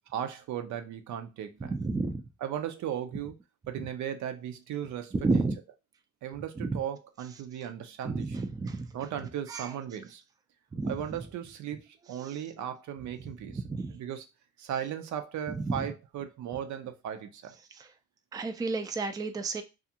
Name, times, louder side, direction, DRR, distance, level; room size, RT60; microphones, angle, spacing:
voice 1, 0.1-1.7 2.4-3.3 3.7-5.4 6.2-8.3 8.9-10.2 10.9-13.6 13.9-14.2 14.6-17.5, right 9 dB, 70° right, 0.5 m, -36 dB
voice 2, 1.6-2.2 5.1-5.6 6.6-6.8 8.0-9.0 9.5-9.8 10.7-11.2 12.1-12.4 13.4-14.0 15.5-15.9 17.7-17.9 18.3-19.6, right 3 dB, 15° right, 0.3 m, -32 dB
2.4 x 2.4 x 2.8 m
cardioid pair, 90°, 30 cm